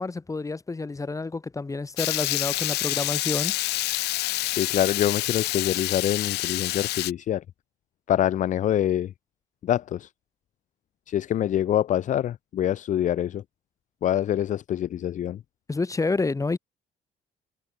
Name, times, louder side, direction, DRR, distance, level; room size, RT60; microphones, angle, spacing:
voice 1, 0.0-3.6 15.7-16.6, left 3 dB, 20° left, 4.1 m, -29 dB
Water tap faucet / Liquid, 2.0-7.1, left 18 dB, 80° left, 1.1 m, -27 dB
voice 2, 4.5-7.4 8.1-9.1 9.6-10.1 11.1-13.4 14.0-15.4, left 11 dB, 45° left, 0.6 m, -25 dB
cardioid pair, 110°, 17 cm